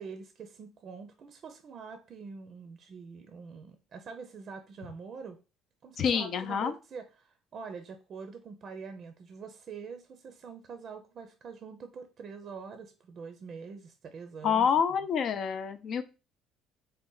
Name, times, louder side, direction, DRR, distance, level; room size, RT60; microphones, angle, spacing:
voice 1, 0.0-5.4 5.8-14.7, right 5 dB, 50° right, 8 dB, 0.5 m, -45 dB
voice 2, 6.0-6.7 14.4-16.0, left 7 dB, 55° left, 10 dB, 0.5 m, -27 dB
3.9 x 2.2 x 3.8 m, 0.31 s
cardioid pair, 95°, 0 cm